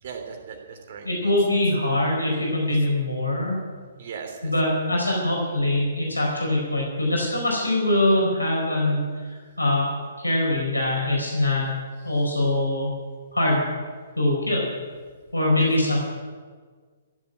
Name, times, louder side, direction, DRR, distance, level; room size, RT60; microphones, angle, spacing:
voice 1, 0.0-1.3 2.7-2.8 4.0-4.5 12.0-12.2 15.5-16.0, right 6 dB, 45° right, 3 dB, 3.1 m, -39 dB
voice 2, 1.0-3.6 4.4-11.7 12.0-12.9 13.3-13.6 14.2-14.7 15.3-16.0, left 1 dB, 85° left, -2 dB, 4.7 m, -23 dB
15.5 x 7.8 x 9.2 m, 1.5 s
figure-of-eight pair, 125°, 0 cm